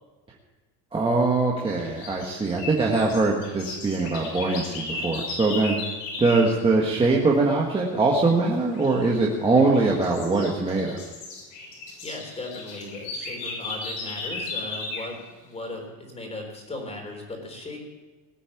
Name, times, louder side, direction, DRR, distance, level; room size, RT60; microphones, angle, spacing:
voice 1, 0.9-5.8 6.2-11.0, right 3 dB, 15° right, -2 dB, 1.5 m, -22 dB
sound 1, 1.8-6.5 8.7-9.1 9.6-15.1, left 3 dB, 75° left, 6.4 m, -36 dB
voice 2, 12.0-17.8, left 2 dB, 15° left, 2 dB, 3.8 m, -37 dB
19.0 x 8.6 x 7.1 m, 1.3 s
cardioid pair, 155°, 38 cm